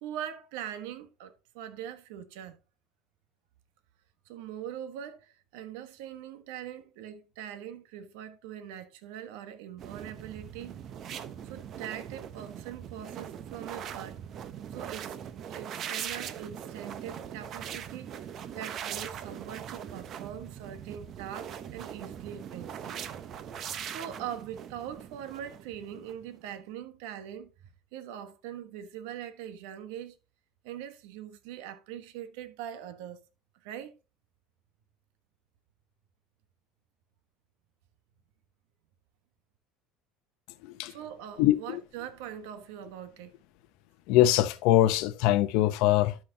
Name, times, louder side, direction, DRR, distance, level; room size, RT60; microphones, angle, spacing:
voice 1, 0.0-2.6 4.2-10.8 11.5-14.2 14.7-15.2 15.5-18.3 18.5-23.0 23.9-27.5 27.9-30.2 30.6-33.3 33.6-34.0 40.9-43.3, right 10 dB, 80° right, 1.3 m, -42 dB
sound 1, 9.8-26.5, right 9 dB, 45° right, 0.8 m, -41 dB
voice 2, 40.6-40.9 41.4-41.8 44.1-46.2, left 14 dB, 70° left, 0.8 m, -23 dB
12.0 x 5.8 x 2.8 m
cardioid pair, 135°, 0 cm